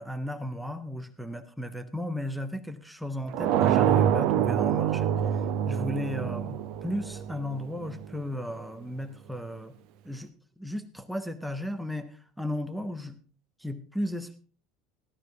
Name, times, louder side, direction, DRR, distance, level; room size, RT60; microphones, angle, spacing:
voice 1, 0.0-5.4 5.7-9.7 10.0-10.3 10.6-13.2 13.6-14.4, left 1 dB, 5° right, 9 dB, 1.1 m, -35 dB
sound 1, 3.3-8.1, right 10 dB, 50° right, 0.8 m, -26 dB
13.5 x 13.5 x 3.5 m, 0.38 s
figure-of-eight pair, 70°, 0 cm